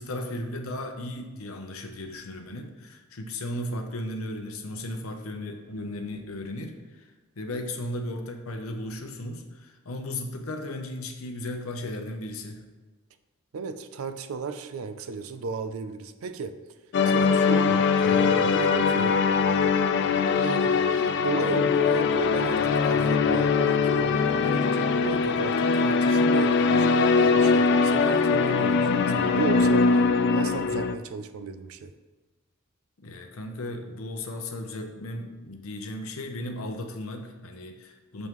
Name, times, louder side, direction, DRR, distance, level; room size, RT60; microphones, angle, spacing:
voice 1, 0.0-7.1 7.4-12.6 17.1-17.3 33.0-38.3, left 1 dB, 80° left, 5 dB, 0.8 m, -35 dB
voice 2, 13.5-16.5 17.0-19.2 20.3-29.9 30.3-31.9, right 4 dB, 80° right, 10 dB, 0.4 m, -34 dB
sound 1, 16.9-31.0, left 5 dB, 55° left, 0.3 m, -22 dB
6.2 x 5.4 x 3.1 m, 1.3 s
head